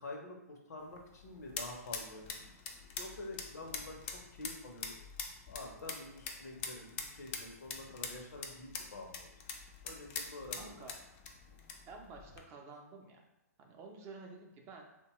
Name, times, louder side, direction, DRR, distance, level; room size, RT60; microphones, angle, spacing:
voice 1, 0.0-2.4 3.0-5.0 5.5-9.3 9.8-10.9, left 2 dB, 75° left, 1 dB, 0.7 m, -47 dB
sound 1, 0.8-12.4, left 5 dB, 40° left, 0.4 m, -45 dB
voice 2, 10.6-10.9 11.9-13.2 13.6-14.9, right 4 dB, 30° right, 2 dB, 0.4 m, -51 dB
2.8 x 2.2 x 2.8 m, 0.89 s
hypercardioid pair, 125°, 9 cm